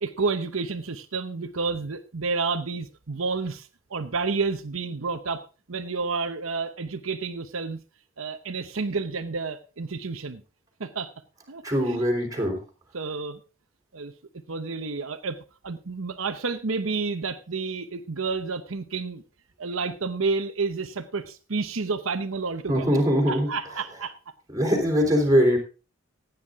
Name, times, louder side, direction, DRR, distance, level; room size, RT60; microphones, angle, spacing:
voice 1, 0.0-5.4 5.7-7.8 8.2-10.4 10.8-11.1 11.5-12.0 12.4-12.5 12.9-13.4 13.9-14.1 14.5-15.4 15.6-19.2 19.6-24.1, right 4 dB, 85° right, 8 dB, 0.9 m, -30 dB
voice 2, 11.6-12.6 22.7-23.5 24.5-25.6, equal, 15° right, 0 dB, 3.4 m, -22 dB
15.5 x 9.4 x 3.7 m, 0.33 s
head